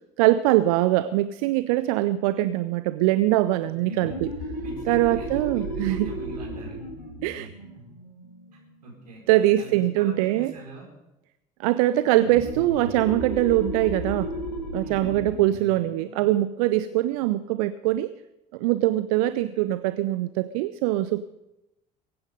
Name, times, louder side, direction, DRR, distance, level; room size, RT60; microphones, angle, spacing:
voice 1, 0.2-4.3 4.9-6.1 7.2-7.5 9.3-10.5 11.6-14.3 14.7-18.1 18.5-21.2, right 15 dB, 60° right, 14 dB, 0.6 m, -23 dB
voice 2, 3.6-4.1 4.6-6.8 7.7-7.8 8.8-9.2 9.6-10.8 14.8-15.1, right 2 dB, 75° right, -2 dB, 4.8 m, -43 dB
sound 1, 3.8-9.1 12.1-17.4, equal, 85° left, 1.8 m, -35 dB
22.5 x 9.6 x 5.4 m, 0.96 s
figure-of-eight pair, 55°, 21 cm